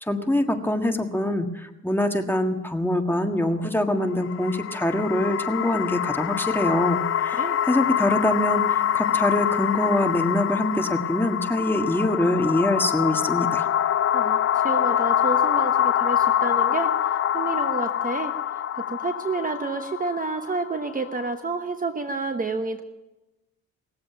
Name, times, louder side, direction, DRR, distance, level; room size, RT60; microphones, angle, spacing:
voice 1, 0.0-13.7, left 1 dB, 5° left, 4 dB, 1.7 m, -24 dB
sound 1, 4.1-21.3, left 10 dB, 45° left, 0.5 m, -25 dB
voice 2, 14.1-16.9 17.3-18.3 18.8-22.8, right 3 dB, 30° right, 7 dB, 1.1 m, -29 dB
19.5 x 7.8 x 9.1 m, 1.0 s
cardioid pair, 90°, 30 cm